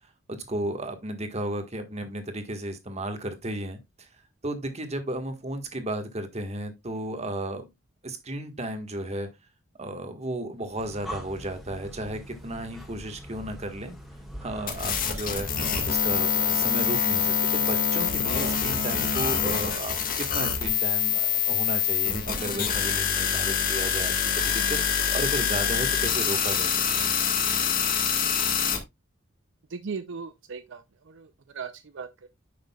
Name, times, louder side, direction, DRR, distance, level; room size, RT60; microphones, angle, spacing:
voice 1, 0.3-3.8 4.4-7.6 8.0-9.3 9.8-13.9 14.4-15.5 15.8-24.1 24.5-27.1, right 1 dB, 35° right, 1.5 m, -34 dB
Breathing, 10.6-16.4, equal, ahead, 1.8 m, -43 dB
sound 1, 14.7-28.8, left 7 dB, 45° left, 1.7 m, -25 dB
voice 2, 29.7-31.3 31.5-32.3, right 5 dB, 65° right, 0.5 m, -38 dB
9.7 x 6.6 x 2.3 m
head